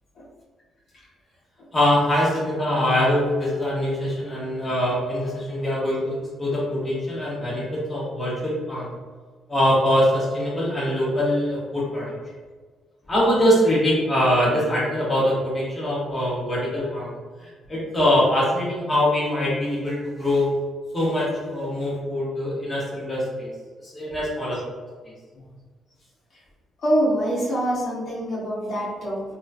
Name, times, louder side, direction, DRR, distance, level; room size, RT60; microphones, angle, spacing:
voice 1, 1.7-8.9 9.5-12.1 13.1-17.1 17.4-20.5 20.9-23.5 23.8-24.6 25.0-25.1, left 1 dB, 20° left, -7 dB, 1.1 m, -23 dB
voice 2, 26.8-29.2, right 1 dB, 60° left, -8 dB, 1.1 m, -24 dB
3.0 x 2.6 x 2.3 m, 1.4 s
cardioid pair, 90°, 0 cm